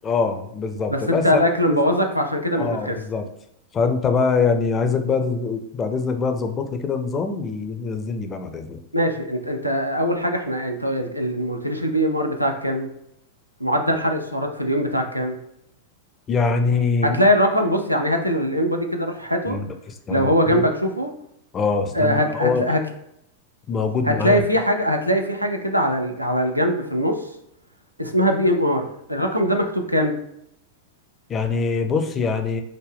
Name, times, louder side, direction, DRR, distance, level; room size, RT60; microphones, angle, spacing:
voice 1, 0.0-1.3 1.7-1.8 2.6-3.3 3.7-8.8 16.3-17.2 19.5-20.6 21.5-22.6 23.7-24.4 31.3-32.6, left 4 dB, 25° left, 7 dB, 0.4 m, -23 dB
voice 2, 0.9-3.0 8.9-12.9 13.6-15.4 17.0-19.6 20.1-21.1 21.9-22.8 24.1-27.3 28.0-30.2, equal, 90° right, 3 dB, 0.4 m, -22 dB
3.9 x 2.1 x 3.4 m, 0.78 s
figure-of-eight pair, 90°, 0 cm